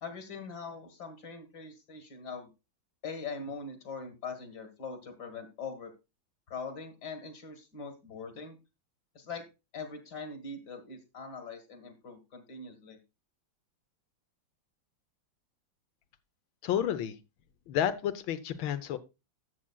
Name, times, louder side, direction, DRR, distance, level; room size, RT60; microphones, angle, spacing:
voice 1, 0.0-2.5 3.0-5.9 6.5-8.6 9.2-9.5 9.7-13.0, left 4 dB, 60° left, 6 dB, 2.1 m, -42 dB
voice 2, 16.6-17.2 17.7-19.0, left 10 dB, 80° left, 12 dB, 1.6 m, -30 dB
13.0 x 7.4 x 2.3 m, 0.26 s
omnidirectional pair, 2.1 m